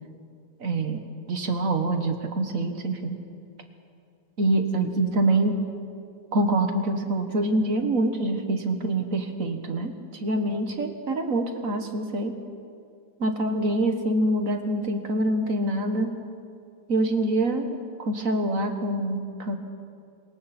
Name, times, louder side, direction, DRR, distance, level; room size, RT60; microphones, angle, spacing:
voice 1, 0.6-1.0 1.3-3.2 4.4-5.6 6.3-12.4 13.2-16.2 16.9-19.6, right 2 dB, 45° right, 6 dB, 1.6 m, -25 dB
26.5 x 23.0 x 4.3 m, 2.4 s
omnidirectional pair, 2.1 m